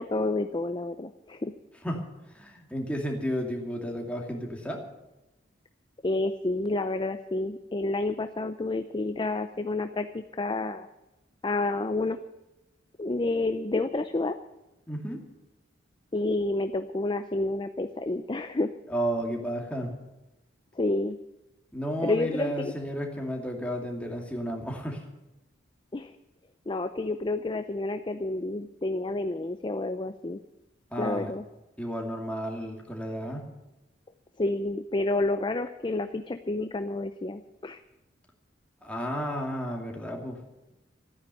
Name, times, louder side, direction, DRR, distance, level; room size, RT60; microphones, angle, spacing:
voice 1, 0.0-1.5 6.0-10.9 11.4-12.2 13.0-14.4 16.1-18.7 20.8-21.2 22.0-22.7 25.9-26.1 26.7-30.4 31.0-31.4 34.4-37.8, left 2 dB, 25° left, 9 dB, 0.5 m, -29 dB
voice 2, 1.8-4.8 14.9-15.2 18.9-19.9 21.7-25.0 30.9-31.3 31.8-33.5 38.8-40.4, equal, 5° left, 0 dB, 2.5 m, -32 dB
14.0 x 9.7 x 9.1 m, 0.99 s
head